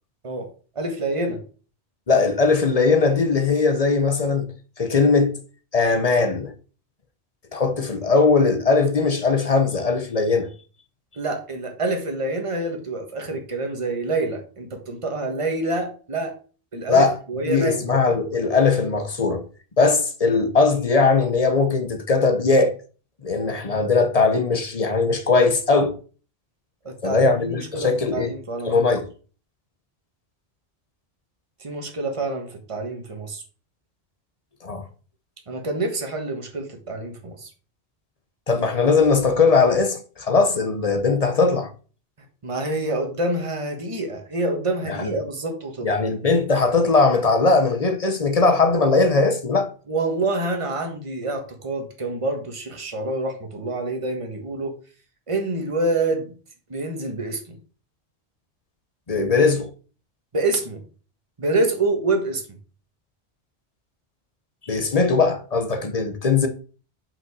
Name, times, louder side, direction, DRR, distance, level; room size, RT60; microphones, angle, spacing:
voice 1, 0.7-1.4 11.2-16.3 16.7-17.9 26.8-28.7 31.6-33.4 35.5-37.5 42.4-45.9 49.9-54.7 55.3-56.3 56.7-57.6 60.3-60.8 61.4-62.4, right 2 dB, 30° right, 1.4 m, -27 dB
voice 2, 2.1-4.5 4.8-5.4 5.7-6.5 7.5-10.5 16.9-17.1 17.4-19.4 19.8-22.7 23.2-26.0 27.0-28.3 28.6-29.1 34.6-34.8 38.5-41.7 44.9-45.1 45.8-49.7 59.1-59.7 64.6-66.5, left 4 dB, 35° left, 1.0 m, -19 dB
5.9 x 5.5 x 4.7 m
omnidirectional pair, 1.1 m